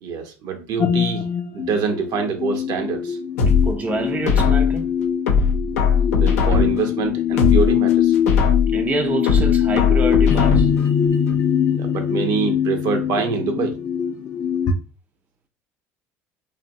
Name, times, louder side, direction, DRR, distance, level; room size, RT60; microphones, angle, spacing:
voice 1, 0.0-1.3 1.5-3.2 6.1-8.2 11.8-13.8, right 5 dB, 60° right, 0.7 m, -25 dB
sound 1, 0.8-14.7, left 9 dB, 40° left, 0.4 m, -22 dB
sound 2, 3.4-4.8 5.3-6.9 7.3-8.8 9.3-10.9 11.3-11.4, left 5 dB, 90° left, 0.5 m, -19 dB
voice 2, 3.6-4.9 8.7-10.7, right 3 dB, 20° right, 0.4 m, -26 dB
2.7 x 2.0 x 2.6 m
hypercardioid pair, 80°, 7 cm